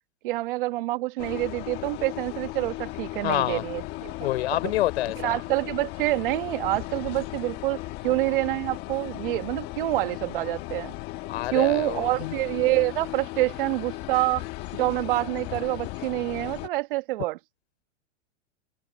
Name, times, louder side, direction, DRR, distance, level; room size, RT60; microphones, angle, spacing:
voice 1, 0.2-4.1 5.2-10.9 11.5-14.4 14.7-17.4, right 19 dB, 45° right, 1.5 m, -27 dB
sound 1, 1.2-16.7, left 18 dB, 25° left, 1.5 m, -36 dB
voice 2, 3.2-3.6 4.2-5.4 11.3-12.3, left 14 dB, 55° left, 4.0 m, -27 dB
supercardioid pair, 165°, 37 cm